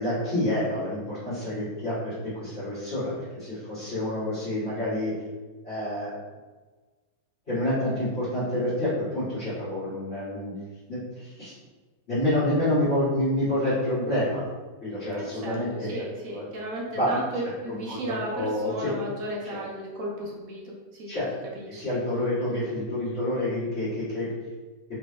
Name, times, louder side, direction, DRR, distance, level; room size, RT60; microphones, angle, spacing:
voice 1, 0.0-5.1 5.6-6.2 7.5-10.5 10.9-11.5 12.1-14.4 14.8-16.0 16.3-16.4 16.9-17.1 17.6-18.9 19.4-19.6 21.1-21.3 21.7-24.3, left 1 dB, 35° left, -15 dB, 1.8 m, -28 dB
voice 2, 15.2-21.2 21.5-21.8, right 1 dB, 55° right, -3 dB, 1.1 m, -34 dB
4.0 x 3.3 x 3.2 m, 1.3 s
omnidirectional pair, 2.1 m